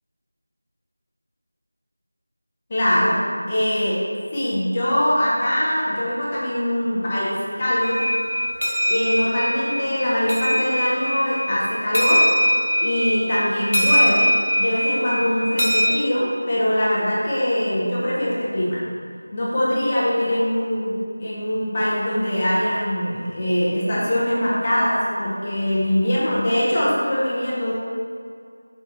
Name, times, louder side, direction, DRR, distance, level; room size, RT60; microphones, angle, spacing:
voice 1, 2.7-3.2 3.5-4.0 4.3-8.0 8.9-12.2 12.8-14.3 14.6-18.8 19.3-27.7, equal, 15° left, -8 dB, 0.9 m, -22 dB
sound 1, 7.8-15.8, equal, 65° left, 1.2 m, -22 dB
8.0 x 4.6 x 3.1 m, 2.1 s
figure-of-eight pair, 175°, 0 cm